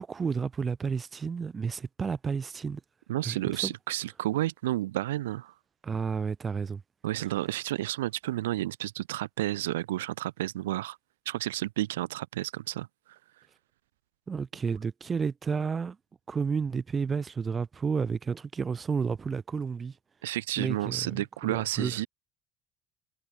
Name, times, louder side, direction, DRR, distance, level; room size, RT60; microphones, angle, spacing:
voice 1, 0.0-2.8 3.3-3.7 5.8-6.8 14.3-16.0 16.3-19.9 20.6-22.0, right 5 dB, 30° right, 2.0 m, -31 dB
voice 2, 3.1-5.5 7.0-11.0 11.2-13.2 20.2-22.1, right 15 dB, 75° right, 1.1 m, -31 dB
figure-of-eight pair, 60°, 0 cm